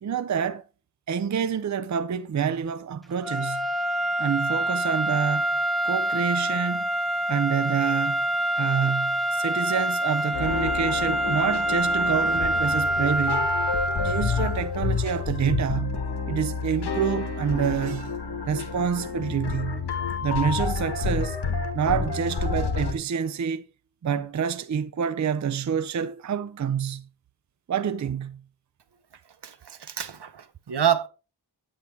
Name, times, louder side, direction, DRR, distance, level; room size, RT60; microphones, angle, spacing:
voice 1, 0.0-0.6 1.1-3.7 4.2-5.5 5.8-6.9 7.3-8.3 8.6-13.5 14.0-18.1 18.4-19.9 20.2-21.4 21.7-23.7 24.0-27.1 27.7-28.4, right 7 dB, 45° right, 0.5 m, -27 dB
sound 1, 3.2-14.7, right 1 dB, ahead, 0.8 m, -26 dB
sound 2, 10.3-22.9, left 5 dB, 80° left, 1.4 m, -29 dB
voice 2, 29.4-31.1, right 9 dB, 80° right, 0.8 m, -27 dB
9.6 x 8.4 x 3.1 m
wide cardioid pair, 90°, 40 cm